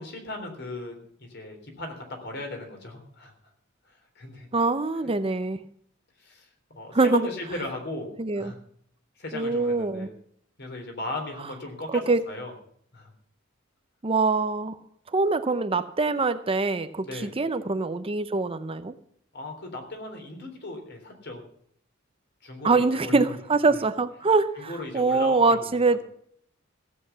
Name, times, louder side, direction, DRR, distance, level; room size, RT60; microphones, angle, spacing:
voice 1, 0.0-3.3 3.9-4.5 5.0-5.1 6.2-8.1 8.4-8.6 9.2-10.1 10.6-12.5 12.9-13.1 17.0-17.3 19.3-21.4 22.4-23.3 24.6-26.0, left 2 dB, 55° left, 4 dB, 3.5 m, -37 dB
voice 2, 4.5-5.6 6.9-7.3 8.2-8.5 9.3-10.1 11.9-12.2 14.0-14.8 15.1-18.9 22.6-26.0, right 3 dB, 30° right, 11 dB, 0.7 m, -24 dB
15.5 x 8.2 x 7.0 m, 0.64 s
head